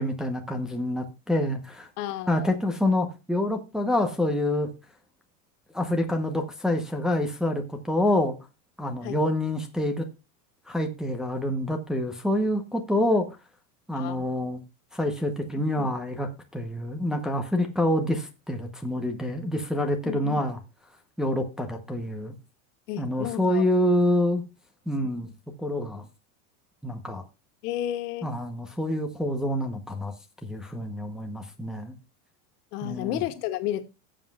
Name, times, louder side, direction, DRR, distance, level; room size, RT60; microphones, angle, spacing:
voice 1, 0.0-1.9 2.3-4.7 5.7-8.4 8.8-10.1 10.7-13.3 13.9-14.6 14.9-20.6 21.2-22.3 23.0-24.4 24.9-25.3 25.6-26.1 26.8-27.2 28.2-30.1 30.4-31.9 32.8-33.2, left 1 dB, ahead, 0.8 m, -27 dB
voice 2, 2.0-2.6 9.0-9.2 13.9-14.3 15.5-15.9 20.0-20.4 22.9-23.6 25.0-25.3 27.6-28.3 32.7-33.8, left 13 dB, 70° left, 1.5 m, -32 dB
17.0 x 7.5 x 2.3 m
supercardioid pair, 145°, 47 cm